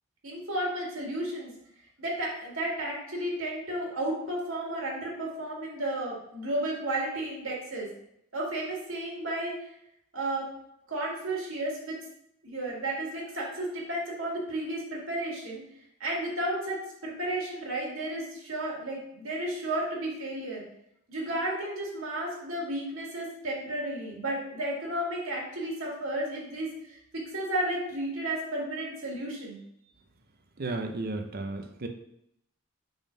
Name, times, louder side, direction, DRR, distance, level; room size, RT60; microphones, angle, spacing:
voice 1, 0.2-1.5 2.0-7.9 8.3-9.6 10.1-10.5 10.9-12.0 12.4-15.6 16.0-20.7 21.1-29.6, right 1 dB, 70° right, -3 dB, 2.0 m, -33 dB
voice 2, 30.6-31.9, right 2 dB, 45° right, 6 dB, 0.6 m, -33 dB
5.4 x 3.7 x 5.0 m, 0.75 s
head